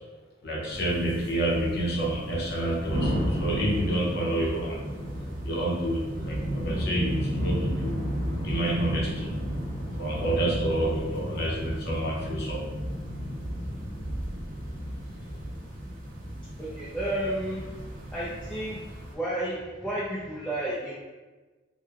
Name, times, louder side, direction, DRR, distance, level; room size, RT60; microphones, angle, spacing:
voice 1, 0.4-4.8 5.4-9.3 10.0-12.7, right 1 dB, 55° left, -4 dB, 0.8 m, -29 dB
sound 1, 0.7-19.1, equal, 45° right, 0.5 m, -33 dB
voice 2, 16.6-17.7 18.1-20.9, right 1 dB, 5° left, -8 dB, 0.4 m, -32 dB
3.0 x 2.2 x 3.6 m, 1.3 s
head